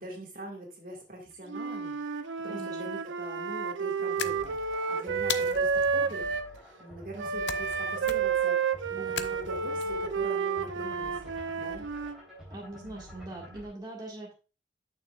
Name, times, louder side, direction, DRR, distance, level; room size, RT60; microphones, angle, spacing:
voice 1, 0.0-6.3 6.8-8.6 8.9-11.3 11.6-11.9, right 1 dB, 50° right, 0 dB, 1.9 m, -43 dB
Wind instrument woodwind instrument, 1.5-6.5 7.2-12.2, right 5 dB, 85° right, 0.6 m, -30 dB
voice 2, 2.5-2.8 12.5-14.3, right 1 dB, 20° right, -2 dB, 1.8 m, -42 dB
sound 1, 4.2-4.8 5.3-5.9 7.5-8.5 9.2-9.8, left 10 dB, 70° left, 0.5 m, -36 dB
sound 2, 4.2-13.7, equal, 5° right, 3.3 m, -48 dB
8.7 x 6.6 x 2.4 m, 0.33 s
head